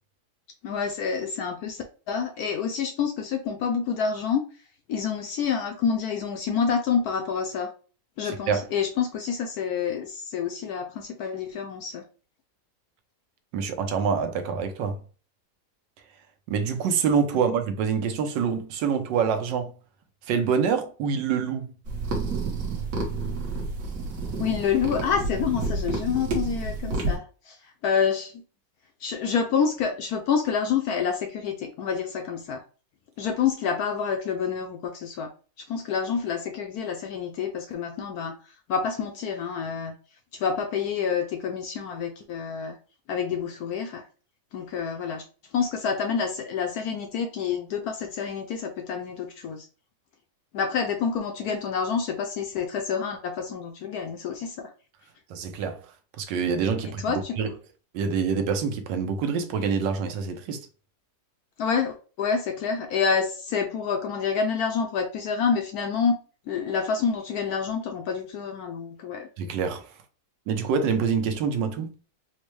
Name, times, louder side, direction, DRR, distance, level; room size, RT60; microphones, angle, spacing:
voice 1, 0.6-4.4 4.9-7.7 8.2-12.0 24.4-27.6 27.8-28.3 29.0-32.6 33.2-35.3 35.7-38.4 38.7-39.9 40.3-42.8 43.1-44.0 44.5-45.2 45.5-49.7 50.5-54.7 56.8-57.4 61.6-66.1 66.5-69.3, left 6 dB, 70° left, 0.9 m, -28 dB
voice 2, 8.2-8.7 13.5-15.0 16.5-19.7 20.3-21.7 55.3-55.8 56.2-57.5 57.9-60.7 69.4-69.9 70.5-71.9, right 6 dB, 80° right, 1.3 m, -26 dB
sound 1, 21.9-27.2, right 3 dB, 55° right, 1.2 m, -30 dB
4.3 x 2.1 x 3.1 m
omnidirectional pair, 1.9 m